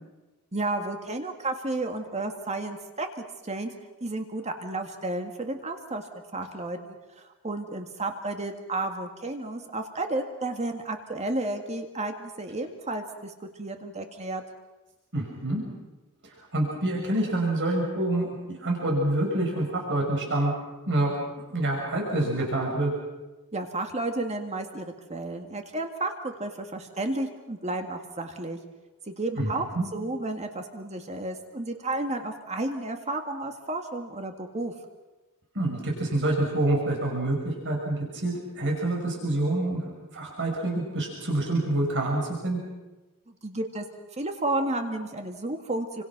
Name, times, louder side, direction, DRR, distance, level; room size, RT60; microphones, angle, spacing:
voice 1, 0.5-3.7 4.0-6.0 6.3-14.4 23.5-28.6 29.1-29.7 29.9-34.7 43.3-43.9 44.2-46.0, right 2 dB, 30° right, 5 dB, 2.0 m, -32 dB
voice 2, 15.1-15.6 16.4-20.5 20.9-21.1 21.5-22.9 29.4-29.8 35.5-42.6, right 1 dB, 55° right, -1 dB, 6.2 m, -27 dB
29.5 x 25.5 x 6.1 m, 1.1 s
head